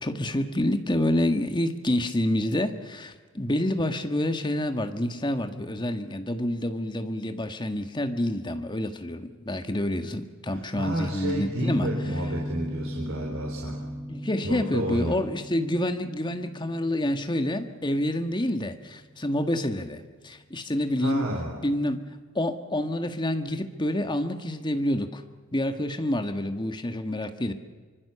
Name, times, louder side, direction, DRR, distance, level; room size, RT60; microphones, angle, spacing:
voice 1, 0.0-11.9 14.1-21.3 21.6-22.0 22.3-25.2 25.5-27.5, left 1 dB, 20° left, 7 dB, 1.7 m, -28 dB
voice 2, 10.5-13.8 14.4-15.2 21.0-21.6, right 1 dB, 65° right, -1 dB, 3.8 m, -31 dB
sound 1, 11.6-20.3, equal, ahead, 1.4 m, -36 dB
25.0 x 24.5 x 7.0 m, 1.4 s
head